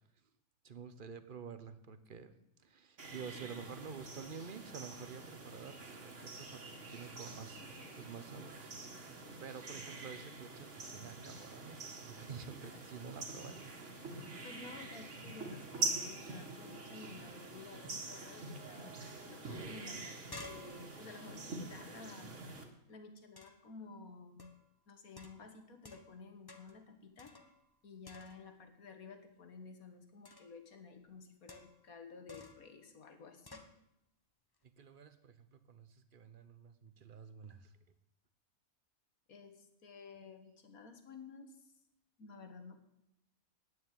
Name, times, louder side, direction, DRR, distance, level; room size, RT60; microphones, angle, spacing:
voice 1, 0.6-2.3 2.6-7.6 8.0-8.8 9.1-13.7 34.8-37.7, right 6 dB, 40° right, 12 dB, 1.0 m, -49 dB
sound 1, 3.0-22.6, right 3 dB, 55° right, 2.1 m, -45 dB
voice 2, 14.4-19.0 19.3-22.3 22.9-24.5 24.9-27.4 27.8-33.7 39.3-41.7 42.2-42.8, left 4 dB, 80° left, 7 dB, 2.0 m, -53 dB
sound 2, 20.3-22.6 23.4-23.7 24.4-24.7 25.2-26.2 26.5-26.8 27.2-27.8 28.0-28.6 30.2-30.6 31.5-31.9 32.3-32.7 33.5-33.8, left 3 dB, 20° left, 0.9 m, -54 dB
9.6 x 9.3 x 9.2 m, 0.83 s
omnidirectional pair, 1.5 m